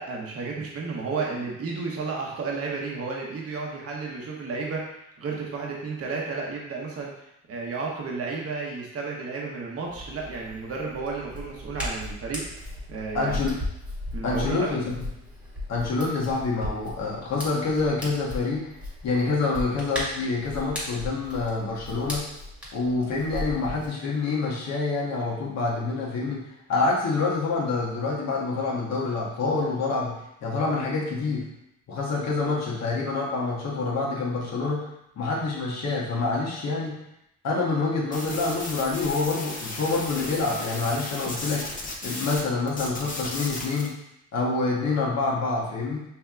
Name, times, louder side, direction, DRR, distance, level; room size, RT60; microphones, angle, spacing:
voice 1, 0.0-7.1 7.5-12.4 12.9-13.4 14.1-14.9, right 4 dB, 50° right, -2 dB, 1.0 m, -32 dB
Hands, 9.9-23.9, left 1 dB, 5° right, 1.5 m, -37 dB
voice 2, 13.1-13.6 14.2-14.9 15.7-18.7 19.0-22.2 22.7-26.4 26.7-31.5 31.9-34.9 35.2-37.0 37.4-41.7 42.0-43.9 44.3-46.0, left 3 dB, 60° left, -3 dB, 1.3 m, -27 dB
sound 1, 38.1-42.4 42.7-43.9, left 2 dB, 25° left, 0.8 m, -35 dB
5.6 x 2.8 x 2.4 m, 0.81 s
cardioid pair, 90°, 30 cm